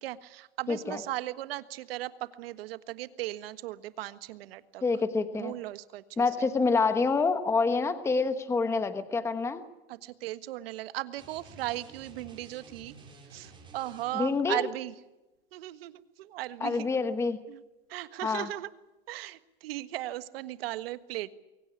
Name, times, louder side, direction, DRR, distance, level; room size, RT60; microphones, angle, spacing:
voice 1, 0.0-4.8 5.3-6.2 9.9-12.9 13.3-14.9 15.5-16.9 17.5-17.6 17.9-18.7 19.1-21.3, right 15 dB, 75° right, 13 dB, 1.6 m, -37 dB
voice 2, 0.7-1.0 4.8-5.5 6.2-9.6 14.1-14.7 16.6-17.4 18.2-18.5, left 4 dB, 10° left, 10 dB, 1.1 m, -27 dB
sound 1, 11.2-14.4, right 4 dB, 15° right, 5.1 m, -52 dB
23.5 x 17.0 x 9.9 m, 1.0 s
supercardioid pair, 160°, 30 cm